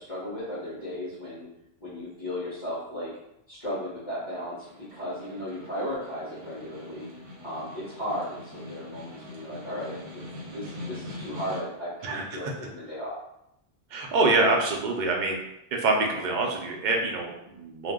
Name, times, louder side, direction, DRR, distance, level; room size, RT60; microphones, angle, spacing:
voice 1, 0.0-1.5 1.8-3.1 3.5-7.1 7.4-13.2 16.1-16.2, equal, 25° left, -11 dB, 1.0 m, -35 dB
Snare drum, 4.4-11.9, left 1 dB, 80° right, 1.0 m, -43 dB
voice 2, 13.9-15.4 15.7-17.9, right 2 dB, 55° right, 0 dB, 0.6 m, -25 dB
2.6 x 2.0 x 3.5 m, 0.83 s
omnidirectional pair, 1.1 m